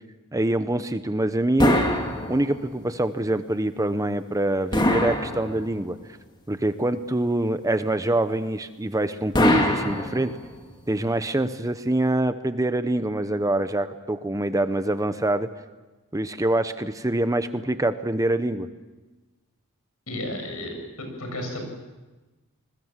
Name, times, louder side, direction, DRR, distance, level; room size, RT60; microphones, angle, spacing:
voice 1, 0.3-1.8 2.3-6.0 6.5-10.3 10.9-15.5 16.1-18.7, right 1 dB, 15° right, 10 dB, 0.9 m, -25 dB
sound 1, 1.6-2.8 4.7-6.0 9.3-10.6, left 1 dB, 20° left, 2.7 m, -23 dB
voice 2, 20.1-21.6, left 1 dB, 70° left, 4 dB, 7.7 m, -33 dB
28.0 x 21.5 x 7.5 m, 1.2 s
head